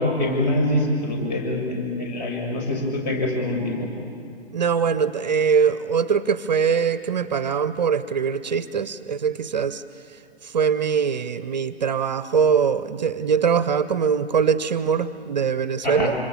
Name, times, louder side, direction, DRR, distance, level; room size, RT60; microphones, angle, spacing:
voice 1, 0.0-3.9 15.8-16.1, left 1 dB, 40° left, 1 dB, 6.3 m, -24 dB
voice 2, 4.5-9.8 10.4-16.1, right 6 dB, 40° right, 15 dB, 0.7 m, -22 dB
26.0 x 26.0 x 7.4 m, 2.4 s
figure-of-eight pair, 130°, 33 cm